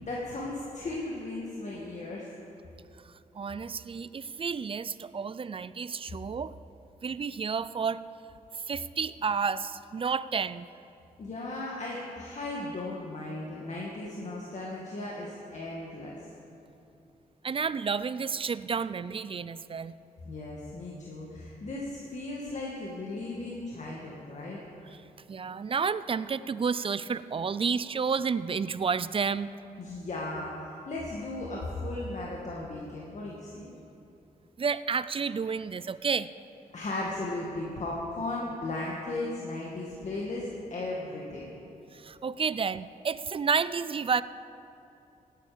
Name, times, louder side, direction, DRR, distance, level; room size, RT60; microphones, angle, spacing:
voice 1, 0.0-2.3 11.2-16.2 20.2-24.6 29.8-33.7 36.7-41.6, left 2 dB, 50° left, -4 dB, 2.2 m, -36 dB
voice 2, 3.3-6.5 7.0-8.0 8.7-10.7 17.4-19.9 25.3-29.5 34.6-36.3 41.9-44.2, right 5 dB, 35° right, 16 dB, 0.4 m, -30 dB
17.0 x 10.5 x 5.2 m, 2.8 s
cardioid pair, 60°, 15 cm